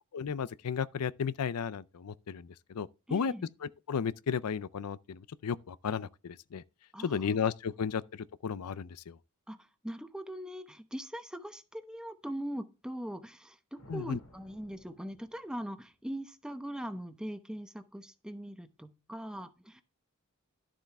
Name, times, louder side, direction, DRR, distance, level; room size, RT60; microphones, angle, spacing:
voice 1, 0.1-3.3 3.6-6.6 7.0-9.2 13.9-14.2, left 6 dB, 90° left, 0.5 m, -34 dB
voice 2, 3.1-3.5 6.9-7.4 9.5-19.8, equal, 5° right, 0.8 m, -41 dB
sound 1, 13.8-16.0, left 1 dB, 70° left, 2.0 m, -58 dB
11.5 x 7.3 x 3.5 m
head